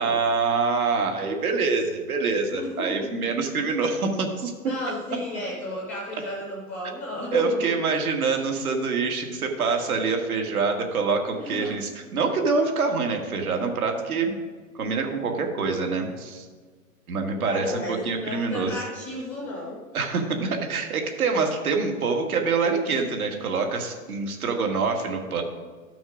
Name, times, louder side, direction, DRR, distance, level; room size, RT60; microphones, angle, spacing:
voice 1, 0.0-4.5 7.3-14.4 14.7-16.5 17.1-18.8 19.9-25.4, right 4 dB, 85° right, 3 dB, 1.9 m, -25 dB
voice 2, 2.5-3.1 4.6-7.7 11.3-11.7 17.4-19.8 23.7-23.8, left 1 dB, 5° left, -3 dB, 0.4 m, -33 dB
12.5 x 6.2 x 5.0 m, 1.5 s
hypercardioid pair, 155°, 42 cm